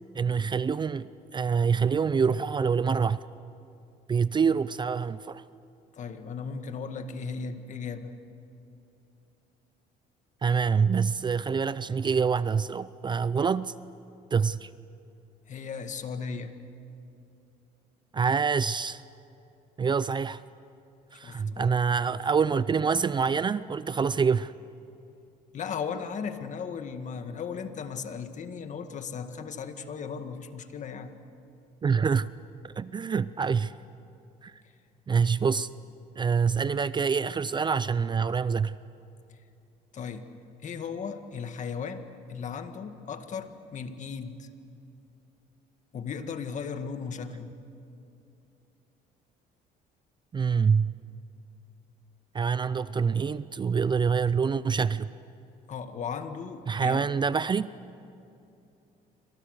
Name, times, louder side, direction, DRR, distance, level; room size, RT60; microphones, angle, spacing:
voice 1, 0.1-1.1 1.3-3.2 4.1-5.4 10.4-13.7 14.3-14.7 18.1-19.0 19.8-20.4 21.1-24.5 31.8-32.3 32.6-33.7 34.4-34.5 35.1-35.7 36.2-38.8 50.3-50.9 52.3-55.1 56.7-57.7, right 6 dB, 25° right, 16 dB, 0.5 m, -26 dB
voice 2, 5.9-8.1 15.5-16.5 21.2-21.8 25.5-31.1 39.9-40.3 40.6-44.5 45.9-47.5 55.7-57.1, left 6 dB, 45° left, 8 dB, 1.8 m, -36 dB
29.0 x 25.5 x 6.6 m, 2.7 s
cardioid pair, 110°, 17 cm